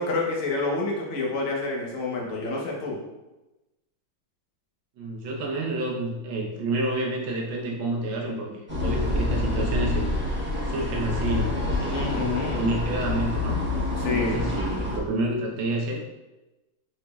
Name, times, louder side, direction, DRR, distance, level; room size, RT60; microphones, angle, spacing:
voice 1, 0.0-3.0 11.9-12.7 14.0-14.4, left 3 dB, 50° left, -3 dB, 1.1 m, -28 dB
voice 2, 5.0-10.1 10.6-13.6 14.0-16.0, right 2 dB, 70° right, -1 dB, 1.5 m, -29 dB
sound 1, 8.7-15.0, left 2 dB, 15° right, 0.3 m, -27 dB
4.9 x 4.3 x 2.3 m, 1.0 s
omnidirectional pair, 2.2 m